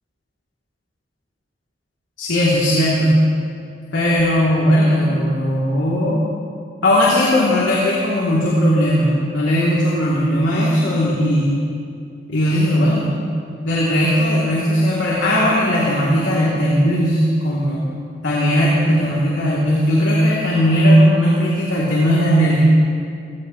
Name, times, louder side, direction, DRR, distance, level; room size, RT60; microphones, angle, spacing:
voice 1, 2.2-3.2 3.9-6.2 6.8-11.5 12.3-13.1 13.6-17.8 18.2-22.6, equal, 90° left, -7 dB, 3.1 m, -17 dB
24.0 x 18.5 x 3.2 m, 2.3 s
head